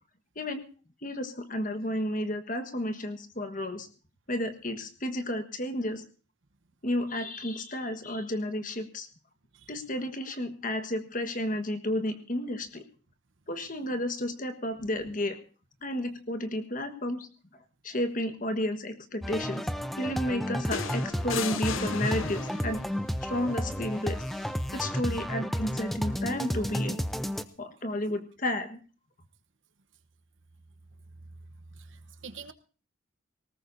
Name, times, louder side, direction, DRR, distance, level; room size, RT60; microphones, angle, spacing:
voice 1, 1.0-3.9 4.3-6.0 6.8-9.1 9.7-12.8 13.5-15.4 15.8-17.3 17.8-19.6 20.0-22.8 23.2-24.2 24.7-27.0 27.6-28.8, left 1 dB, 40° left, 8 dB, 1.5 m, -32 dB
sound 1, 19.2-27.4, equal, ahead, 0.6 m, -32 dB
sound 2, 20.7-22.8 24.2-24.5, left 7 dB, 70° left, 0.8 m, -36 dB
voice 2, 31.8-32.5, right 5 dB, 65° right, 9 dB, 1.1 m, -45 dB
19.0 x 18.5 x 2.7 m, 0.37 s
head